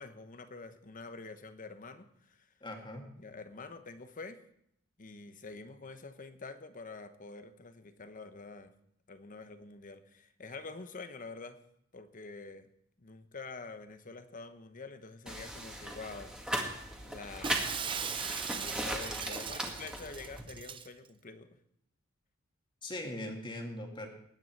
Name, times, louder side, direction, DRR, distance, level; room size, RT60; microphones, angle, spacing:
voice 1, 0.0-2.5 3.2-4.4 5.0-8.7 9.1-11.6 11.9-12.7 13.0-16.4 17.1-17.9 18.4-21.6, left 3 dB, 40° left, 10 dB, 1.0 m, -47 dB
voice 2, 2.6-3.1 22.8-24.1, left 1 dB, 25° left, 2 dB, 2.1 m, -40 dB
sound 1, 15.3-20.4, right 1 dB, 5° right, 2.0 m, -38 dB
Shatter, 17.4-20.9, right 7 dB, 25° right, 0.5 m, -39 dB
20.0 x 9.2 x 4.6 m, 0.72 s
head